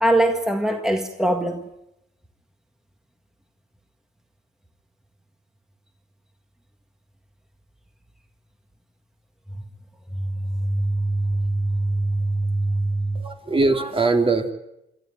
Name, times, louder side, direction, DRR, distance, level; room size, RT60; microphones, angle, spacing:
voice 1, 0.0-1.6 10.2-13.3, right 1 dB, 5° right, 1.8 m, -23 dB
voice 2, 13.1-14.5, right 3 dB, 25° right, 2.8 m, -21 dB
26.0 x 13.0 x 9.4 m
cardioid pair, 90°, 20 cm